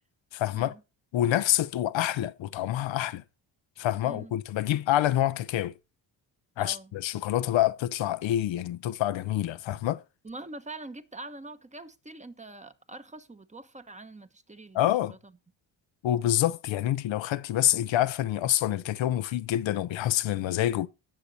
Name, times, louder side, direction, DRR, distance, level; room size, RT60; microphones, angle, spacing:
voice 1, 0.3-0.7 1.1-3.2 3.8-5.7 6.6-10.0 14.7-15.2 16.0-20.9, left 13 dB, 70° left, 0.7 m, -27 dB
voice 2, 4.0-4.3 6.6-6.9 10.2-15.2, right 2 dB, 15° right, 1.1 m, -44 dB
18.5 x 6.7 x 2.8 m
cardioid pair, 85°, 48 cm